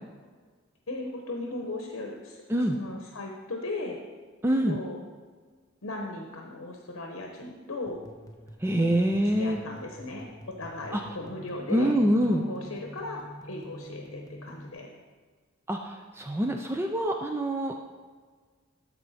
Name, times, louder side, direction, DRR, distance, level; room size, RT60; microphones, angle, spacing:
voice 1, 0.9-2.4 2.7-4.0 4.7-5.0 5.8-8.0 8.7-8.9 9.2-14.9, left 2 dB, 80° left, 1 dB, 0.9 m, -37 dB
voice 2, 4.4-4.8 8.6-9.6 10.9-11.0 11.7-12.4 15.7-17.7, right 1 dB, 10° right, 3 dB, 0.4 m, -25 dB
sound 1, 7.9-14.7, equal, 15° left, 0.7 m, -47 dB
13.0 x 4.4 x 4.1 m, 1.5 s
head